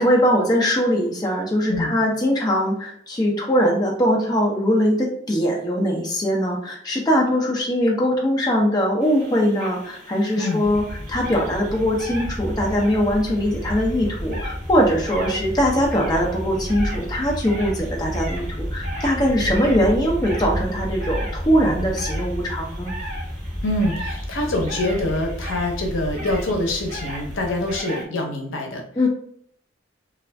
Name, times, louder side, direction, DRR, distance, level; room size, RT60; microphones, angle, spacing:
voice 1, 0.0-10.8 11.1-22.9 29.0-29.1, equal, 20° left, -2 dB, 0.5 m, -21 dB
sound 1, 9.0-28.0, right 1 dB, 45° right, 1.0 m, -39 dB
sound 2, 10.6-27.8, equal, ahead, 1.5 m, -31 dB
voice 2, 23.6-28.8, left 1 dB, 85° left, 2 dB, 0.7 m, -25 dB
2.4 x 2.4 x 3.3 m, 0.66 s
head